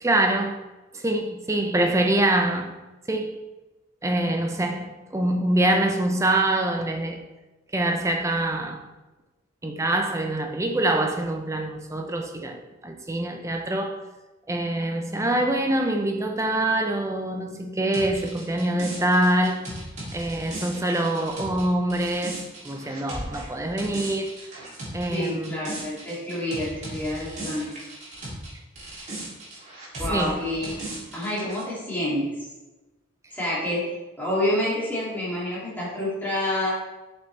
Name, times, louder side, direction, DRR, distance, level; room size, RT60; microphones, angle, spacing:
voice 1, 0.0-0.6 0.9-2.8 3.1-3.5 4.0-7.2 7.7-8.9 9.6-14.0 14.5-19.7 20.1-24.4 24.9-25.6 30.0-30.5, right 1 dB, 15° right, 0.6 m, -25 dB
sound 1, 17.9-28.5 28.8-31.6, right 1 dB, 35° right, 2.6 m, -37 dB
voice 2, 25.1-27.8 30.0-30.8 31.1-32.5 33.3-33.9 34.2-36.7, left 1 dB, 10° left, 2.4 m, -28 dB
7.7 x 6.0 x 3.3 m
head